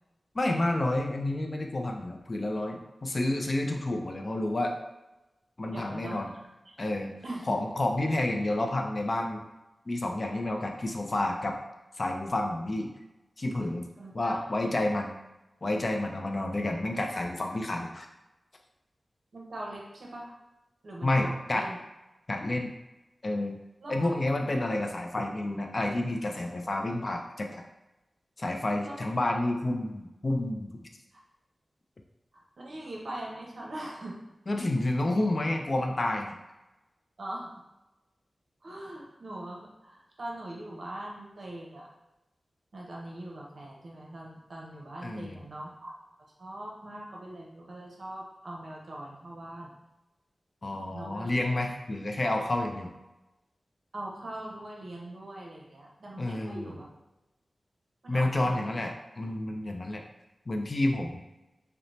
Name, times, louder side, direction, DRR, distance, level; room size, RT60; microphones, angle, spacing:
voice 1, 0.3-4.7 5.6-6.3 6.8-7.2 7.5-9.4 9.9-11.6 12.0-12.9 13.4-13.9 14.1-15.2 15.6-18.1 21.0-21.7 22.3-22.7 23.2-23.6 23.9-27.6 28.4-30.7 34.5-36.3 45.0-45.4 50.6-52.9 56.2-56.7 58.1-60.0 60.5-61.2, left 1 dB, 45° left, 3 dB, 0.3 m, -29 dB
voice 2, 5.7-6.2 6.6-6.7 7.2-7.6 14.0-14.8 19.3-20.4 20.8-21.8 23.8-24.1 28.8-29.1 31.1-31.2 32.3-34.2 37.2-37.5 38.6-41.9 42.7-45.9 46.4-49.7 50.9-51.3 53.9-56.8 58.0-58.8, right 1 dB, 70° right, -3 dB, 0.6 m, -41 dB
2.6 x 2.0 x 3.0 m, 1.0 s
wide cardioid pair, 100°, 0 cm